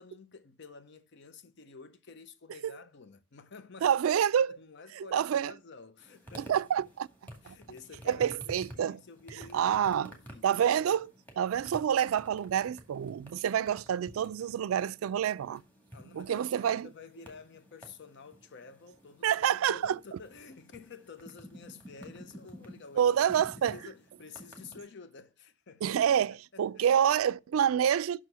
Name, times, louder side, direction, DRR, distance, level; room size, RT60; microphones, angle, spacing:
voice 1, 0.0-3.9 4.5-6.7 7.4-11.1 13.7-14.3 15.9-26.0 26.3-26.8, left 4 dB, 60° left, 0.6 m, -51 dB
voice 2, 3.8-4.6 5.0-5.5 6.5-7.1 7.5-7.6 8.1-9.0 9.5-10.1 10.4-11.1 11.4-15.6 16.1-16.9 19.2-20.0 23.0-23.8 25.8-28.2, right 9 dB, 90° right, 0.3 m, -27 dB
sound 1, 6.0-24.8, equal, 10° left, 2.1 m, -52 dB
6.2 x 6.2 x 6.7 m
head